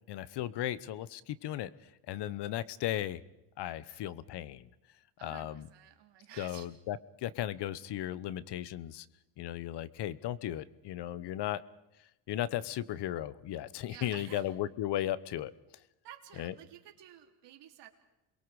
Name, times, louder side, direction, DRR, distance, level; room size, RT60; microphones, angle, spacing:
voice 1, 0.1-1.7 2.1-3.2 3.6-4.7 5.2-5.6 6.4-9.0 9.4-11.6 12.3-15.5 16.4-16.5, left 12 dB, 60° left, 18 dB, 1.0 m, -36 dB
voice 2, 5.2-6.7 13.9-14.5 16.0-17.9, right 12 dB, 65° right, 5 dB, 3.0 m, -52 dB
28.5 x 22.5 x 4.9 m, 0.90 s
supercardioid pair, 95°, 45 cm